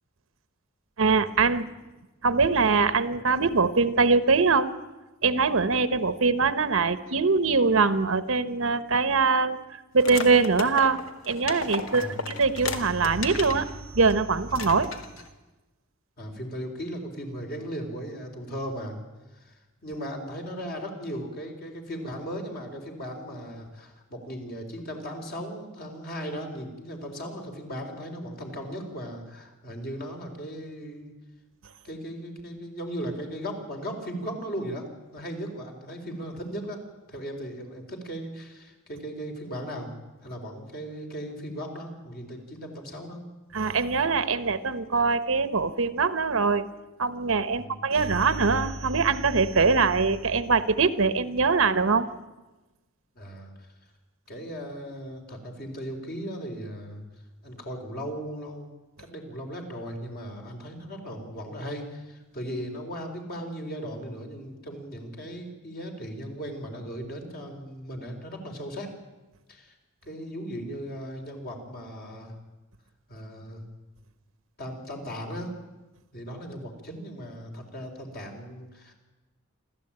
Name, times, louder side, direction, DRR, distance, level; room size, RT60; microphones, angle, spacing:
voice 1, 1.0-1.7 2.2-4.7 5.2-9.6 9.9-11.0 11.3-14.9 43.5-46.7 47.0-52.1, right 4 dB, 70° right, 13 dB, 1.0 m, -23 dB
sound 1, 10.0-13.6 14.0-14.1 14.5-15.3, left 4 dB, 80° left, 2.0 m, -34 dB
voice 2, 11.9-12.3 16.2-19.0 19.3-31.1 31.8-34.8 35.1-36.8 37.1-39.9 40.2-43.2 47.5-47.8 53.1-53.7 54.3-57.0 57.4-58.7 59.0-68.9 69.5-69.7 70.1-72.3 73.1-73.6 74.6-75.5 76.1-78.9, equal, 50° left, 2 dB, 4.2 m, -37 dB
27.5 x 13.5 x 8.8 m, 1.1 s
head